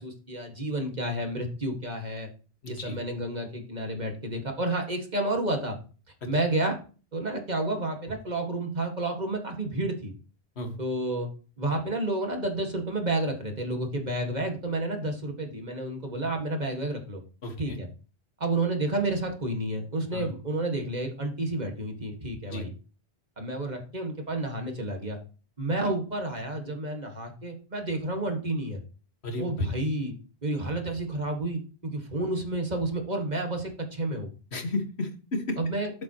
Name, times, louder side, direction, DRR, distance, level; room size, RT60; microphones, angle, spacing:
voice 1, 0.0-2.3 2.7-5.8 6.3-6.8 7.1-10.1 10.8-11.3 11.6-17.2 17.6-17.9 18.4-22.7 23.4-25.2 25.6-28.8 29.4-30.1 30.4-34.3 35.6-35.9, right 2 dB, 45° right, 3 dB, 2.0 m, -30 dB
voice 2, 2.6-3.0 6.2-6.3 10.6-10.8 17.4-17.8 20.1-20.3 22.5-22.6 29.2-29.7 34.5-35.6, left 1 dB, 85° left, 6 dB, 1.9 m, -33 dB
13.5 x 7.4 x 3.0 m, 0.36 s
omnidirectional pair, 1.1 m